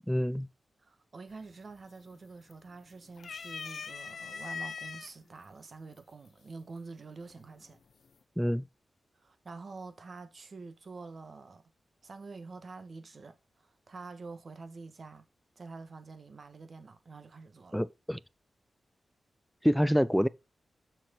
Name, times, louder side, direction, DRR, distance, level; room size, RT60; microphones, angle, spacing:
voice 1, 0.1-0.5 8.4-8.6 17.7-18.2 19.6-20.3, equal, ahead, 0.4 m, -26 dB
voice 2, 0.8-7.8 9.2-11.6 12.0-15.3 15.5-17.8, right 3 dB, 50° right, 1.6 m, -47 dB
sound 1, 1.3-1.7 2.1-2.8 3.2-5.1 6.0-6.1 7.3-7.8, left 5 dB, 70° left, 0.8 m, -41 dB
6.5 x 6.1 x 3.9 m
wide cardioid pair, 95°, 0 cm